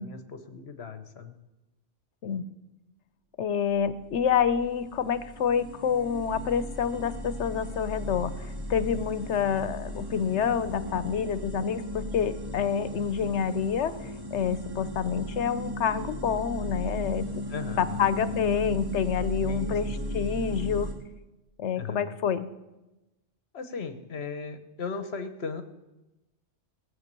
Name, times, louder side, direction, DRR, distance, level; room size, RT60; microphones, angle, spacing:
voice 1, 0.0-1.3 17.5-18.4 19.5-19.8 20.0-20.2 21.8-22.2 23.5-25.6, left 5 dB, 65° left, 10 dB, 1.3 m, -37 dB
voice 2, 3.4-13.9 14.3-17.5 17.8-20.9 21.6-22.5, left 7 dB, 85° left, 14 dB, 1.1 m, -28 dB
sound 1, 3.7-20.9, equal, 20° right, 1.6 m, -36 dB
17.5 x 7.9 x 6.7 m, 1.0 s
omnidirectional pair, 1.2 m